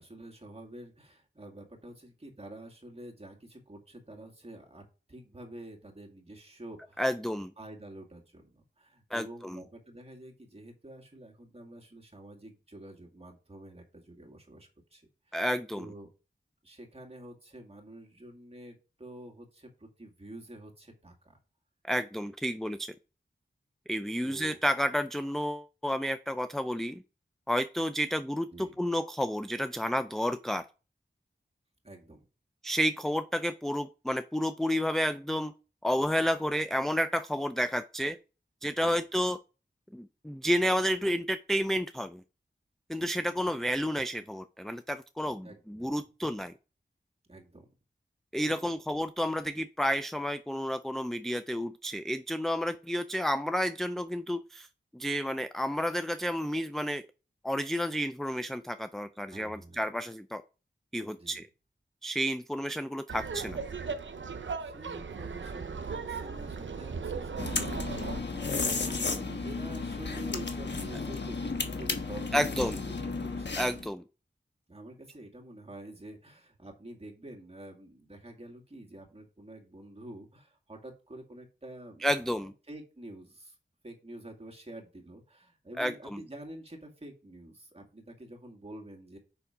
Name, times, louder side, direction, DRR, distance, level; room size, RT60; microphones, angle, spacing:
voice 1, 0.0-4.8 5.1-7.0 7.6-15.4 15.8-16.1 16.6-21.4 24.2-24.6 28.5-28.7 31.8-32.3 38.7-39.0 45.4-46.0 47.3-47.7 59.3-59.9 61.1-61.4 64.6-73.6 74.7-83.6 83.8-89.2, right 1 dB, 30° right, 1 dB, 2.1 m, -48 dB
voice 2, 7.0-7.5 9.1-9.6 15.3-15.9 21.9-22.9 23.9-27.0 27.5-30.7 32.6-35.5 35.8-38.2 38.6-39.4 39.9-42.2 42.9-46.5 48.3-54.7 54.9-57.0 57.4-60.4 60.9-61.4 62.0-63.6 72.3-72.8 73.6-74.0 82.0-82.5 85.8-86.2, equal, ahead, 10 dB, 0.4 m, -31 dB
Laughter, 63.1-68.2, right 5 dB, 80° right, 0.7 m, -37 dB
sound 1, 67.4-73.9, left 4 dB, 70° left, 1.2 m, -33 dB
6.9 x 5.6 x 4.9 m, 0.33 s
wide cardioid pair, 80°, 19 cm